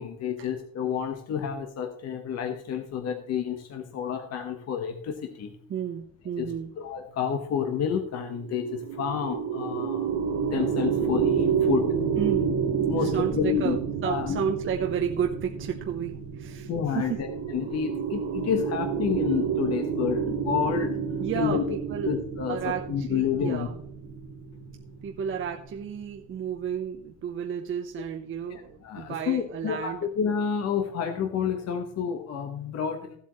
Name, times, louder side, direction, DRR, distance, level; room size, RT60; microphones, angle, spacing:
voice 1, 0.0-5.5 6.4-10.1 10.5-11.9 12.9-13.8 14.0-14.4 16.7-20.9 21.3-21.6 22.0-22.6 22.9-23.7 28.5-33.1, left 8 dB, 45° left, 5 dB, 1.3 m, -29 dB
voice 2, 5.7-6.7 12.2-17.2 21.2-22.1 22.5-23.8 25.0-30.1, right 8 dB, 35° right, 3 dB, 0.9 m, -32 dB
sound 1, 8.3-25.8, right 7 dB, 70° right, 2.5 m, -29 dB
15.5 x 8.1 x 3.1 m, 0.64 s
cardioid pair, 145°, 35 cm